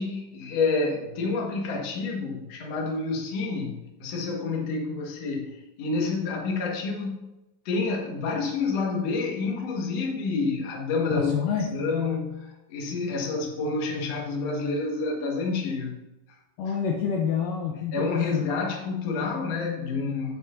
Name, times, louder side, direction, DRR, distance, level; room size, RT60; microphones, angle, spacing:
voice 1, 0.0-7.2 7.7-11.3 11.7-16.0 17.9-20.4, left 4 dB, 55° left, 0 dB, 1.9 m, -28 dB
voice 2, 11.2-11.7 16.6-18.4, left 7 dB, 75° left, 1 dB, 2.0 m, -28 dB
9.7 x 7.9 x 2.6 m, 0.97 s
omnidirectional pair, 4.8 m